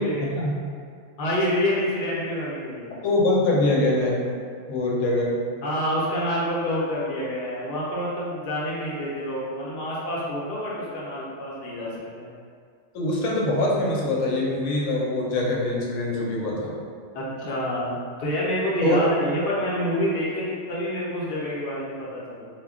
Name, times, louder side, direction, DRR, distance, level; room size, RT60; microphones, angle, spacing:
voice 1, 0.2-0.5 3.0-4.2 4.7-5.3 12.9-16.8 18.8-19.0, left 2 dB, 90° left, -3 dB, 0.9 m, -23 dB
voice 2, 1.2-2.9 5.6-12.3 17.1-22.5, equal, 55° left, -6 dB, 0.8 m, -27 dB
2.2 x 2.1 x 3.5 m, 2.2 s
omnidirectional pair, 1.3 m